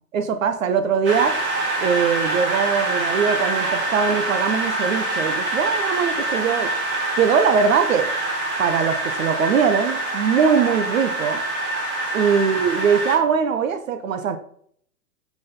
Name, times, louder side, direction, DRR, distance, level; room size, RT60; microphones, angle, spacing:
voice 1, 0.1-1.4 1.8-6.8 7.2-8.1 8.6-11.4 12.1-14.4, right 6 dB, 55° right, 1.0 m, -21 dB
sound 1, 1.0-13.2, right 2 dB, 25° right, 2.8 m, -25 dB
7.7 x 6.1 x 3.8 m
figure-of-eight pair, 120°, 47 cm